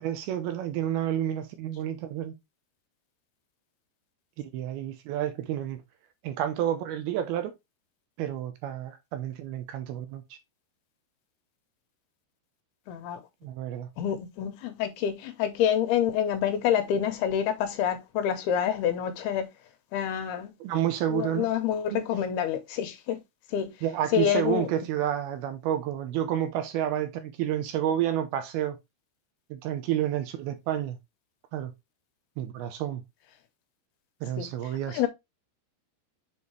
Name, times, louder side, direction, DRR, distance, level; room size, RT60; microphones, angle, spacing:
voice 1, 0.0-2.3 4.4-5.8 6.2-7.5 8.2-10.4 13.4-13.9 20.6-21.5 21.9-22.0 23.8-28.8 29.5-31.0 31.5-31.7 32.4-33.0 34.2-35.1, right 11 dB, 75° right, 2.5 m, -30 dB
voice 2, 12.9-13.2 14.0-19.5 19.9-20.5 21.1-23.2 23.5-23.7 24.1-24.7 34.4-34.5 34.9-35.1, left 9 dB, 75° left, 2.7 m, -27 dB
7.2 x 4.4 x 3.1 m
omnidirectional pair, 4.9 m